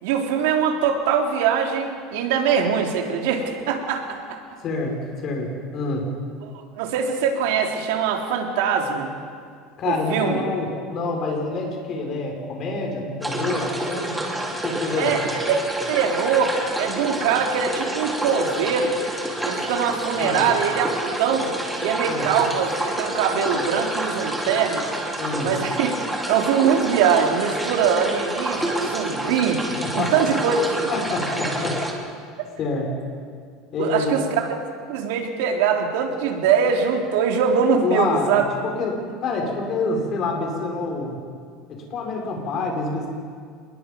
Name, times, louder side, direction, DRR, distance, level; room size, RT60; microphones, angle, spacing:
voice 1, 0.0-4.4 6.4-9.1 9.8-10.4 15.0-15.6 15.9-19.0 19.4-20.9 21.2-21.5 21.8-24.8 25.4-25.9 26.3-29.6 29.9-30.9 33.8-34.5 34.9-38.5, right 7 dB, 80° right, 1 dB, 3.5 m, -22 dB
voice 2, 4.6-6.1 9.8-14.1 14.6-15.1 20.2-20.5 22.0-22.3 25.2-25.5 29.7-30.3 30.9-31.8 32.6-32.9 33.7-34.2 37.8-41.2 41.7-43.1, left 3 dB, 40° left, 1 dB, 5.7 m, -27 dB
sound 1, 13.2-31.9, right 1 dB, 5° right, 2.9 m, -28 dB
27.5 x 21.5 x 5.4 m, 2.1 s
supercardioid pair, 140°, 0 cm